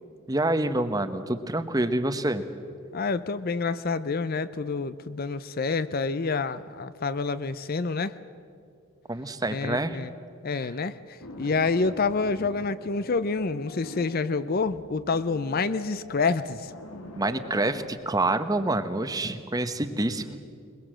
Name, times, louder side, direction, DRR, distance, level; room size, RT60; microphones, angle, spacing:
voice 1, 0.3-2.4 9.1-10.0 17.1-20.4, right 2 dB, 15° right, 10 dB, 0.9 m, -27 dB
voice 2, 2.9-8.1 9.5-10.1 10.4-16.7, left 4 dB, 40° left, 14 dB, 0.5 m, -28 dB
sound 1, 11.2-17.9, left 2 dB, 75° left, 1.8 m, -43 dB
22.0 x 22.0 x 7.6 m, 2.3 s
head